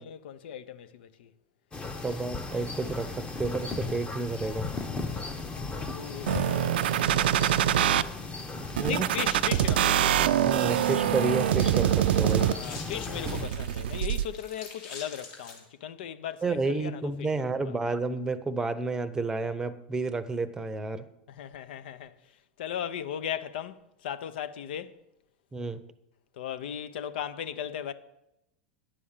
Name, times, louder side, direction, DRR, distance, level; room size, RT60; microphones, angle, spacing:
voice 1, 0.0-1.3 4.8-8.2 8.9-10.3 12.4-17.7 21.3-25.0 26.3-27.9, left 9 dB, 75° left, 0.7 m, -38 dB
sound 1, 1.7-13.5, left 3 dB, 15° left, 0.9 m, -37 dB
voice 2, 2.0-4.7 8.6-9.1 10.4-12.5 16.4-21.0 25.5-25.8, right 3 dB, 10° right, 0.7 m, -31 dB
sound 2, 6.3-8.0 8.8-12.8 13.3-14.3, right 11 dB, 85° right, 0.4 m, -25 dB
sound 3, 10.5-15.6, left 4 dB, 60° left, 2.7 m, -47 dB
10.0 x 6.3 x 7.3 m
supercardioid pair, 120°, 5 cm